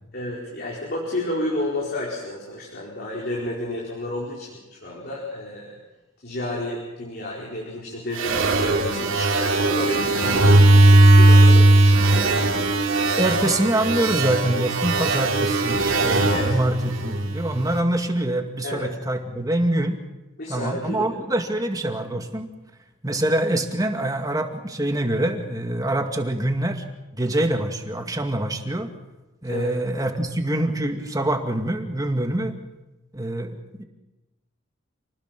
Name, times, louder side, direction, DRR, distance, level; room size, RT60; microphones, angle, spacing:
voice 1, 0.1-5.8 6.2-12.4 16.3-16.6 18.6-18.8 20.4-21.1 29.5-29.7 30.0-30.1, left 1 dB, 50° left, -4 dB, 4.9 m, -31 dB
sound 1, 8.2-17.6, right 2 dB, 75° right, 2.7 m, -18 dB
voice 2, 13.2-20.0 20.5-22.5 23.0-26.8 27.1-28.9 29.4-32.5 33.1-33.8, right 1 dB, 20° right, 5 dB, 2.2 m, -25 dB
28.5 x 19.5 x 6.1 m, 1.0 s
head